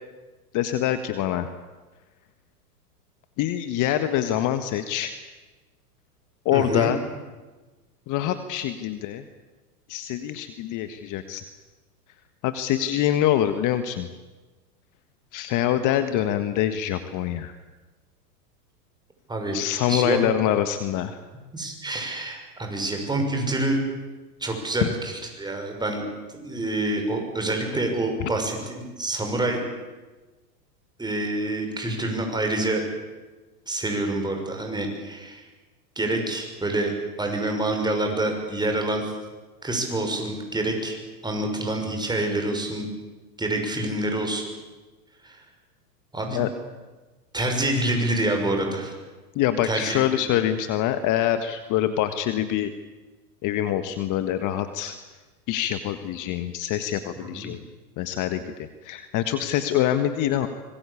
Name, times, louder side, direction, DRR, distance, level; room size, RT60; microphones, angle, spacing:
voice 1, 0.5-1.5 3.4-5.1 6.4-7.0 8.1-9.2 9.9-11.4 12.4-14.1 15.3-17.5 19.5-21.2 24.8-24.9 46.3-46.5 49.3-52.7 53.4-55.0 55.5-57.6 58.0-60.5, left 11 dB, 40° left, 10 dB, 1.6 m, -25 dB
voice 2, 6.5-6.9 19.3-19.6 19.9-20.2 21.5-23.8 24.4-26.1 26.3-28.6 29.0-29.6 31.0-32.8 33.7-35.4 36.0-36.9 37.2-39.0 39.6-41.0 41.2-42.9 43.4-44.5 45.2-45.4 46.1-46.4 47.3-48.9 49.6-50.2 57.2-57.5, right 1 dB, 10° right, 2 dB, 6.3 m, -27 dB
25.5 x 21.5 x 8.5 m, 1.2 s
hypercardioid pair, 110°, 49 cm